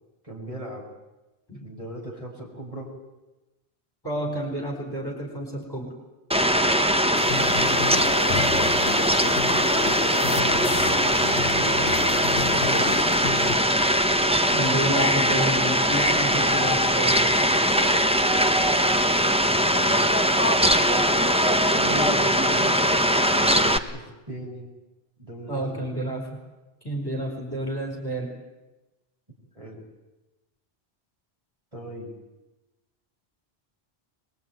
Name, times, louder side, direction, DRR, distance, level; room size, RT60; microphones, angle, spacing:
voice 1, 0.2-0.9 1.6-2.9 9.8-11.9 19.6-20.0 21.7-24.7 25.2-25.9 29.5-29.8 31.7-32.1, right 1 dB, 30° right, -2 dB, 6.4 m, -38 dB
voice 2, 4.0-5.9 14.5-17.6 25.5-26.3 26.8-28.3, right 1 dB, 20° left, 1 dB, 5.0 m, -30 dB
Fowl, 6.3-23.8, equal, 5° right, 1.0 m, -21 dB
sound 1, 7.1-13.6, left 5 dB, 65° left, 1.2 m, -31 dB
23.5 x 22.0 x 9.4 m, 1.1 s
omnidirectional pair, 1.1 m